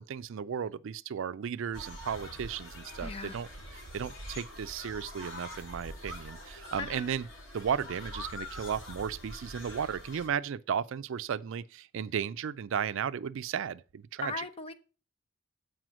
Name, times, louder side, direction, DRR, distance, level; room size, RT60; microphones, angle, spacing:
voice 1, 0.0-7.3 7.5-14.4, right 7 dB, 65° right, 0.4 m, -35 dB
sound 1, 1.7-10.3, left 1 dB, 65° left, 2.1 m, -44 dB
voice 2, 3.0-3.4 6.8-7.1 14.2-14.7, left 3 dB, 30° left, 0.7 m, -38 dB
7.7 x 4.9 x 6.1 m
head